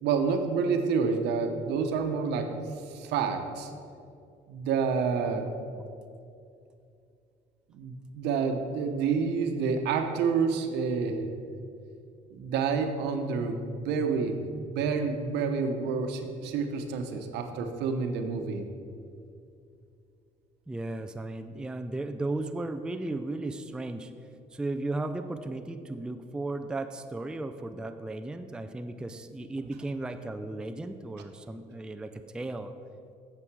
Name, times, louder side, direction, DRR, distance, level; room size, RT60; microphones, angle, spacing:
voice 1, 0.0-2.5 2.9-3.7 4.5-5.5 7.7-11.2 11.5-11.6 12.3-18.6, right 5 dB, 85° right, 5 dB, 0.9 m, -28 dB
voice 2, 20.7-24.1 24.5-32.7, right 2 dB, 5° right, 8 dB, 0.3 m, -35 dB
8.8 x 7.0 x 4.7 m, 2.5 s
cardioid pair, 110°, 17 cm